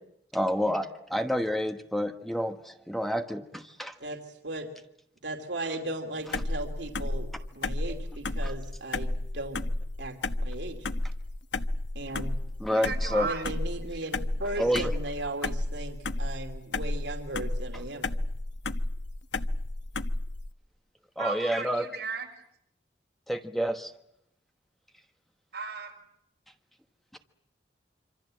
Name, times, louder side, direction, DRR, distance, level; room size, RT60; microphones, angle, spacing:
voice 1, 0.3-3.9 8.4-8.5 12.6-13.3 14.6-14.9 21.2-21.9 23.3-23.9 27.1-27.2, equal, ahead, 6 dB, 1.2 m, -29 dB
voice 2, 4.0-4.7 5.2-9.6 10.0-10.9 11.9-12.3 13.2-18.1, right 2 dB, 80° right, 4 dB, 2.8 m, -37 dB
sound 1, 6.3-20.5, left 2 dB, 80° left, 1.0 m, -32 dB
voice 3, 12.7-13.4 14.5-14.7 21.2-22.3 25.5-25.9, right 5 dB, 60° right, 2 dB, 6.6 m, -35 dB
26.5 x 26.0 x 7.7 m, 0.79 s
head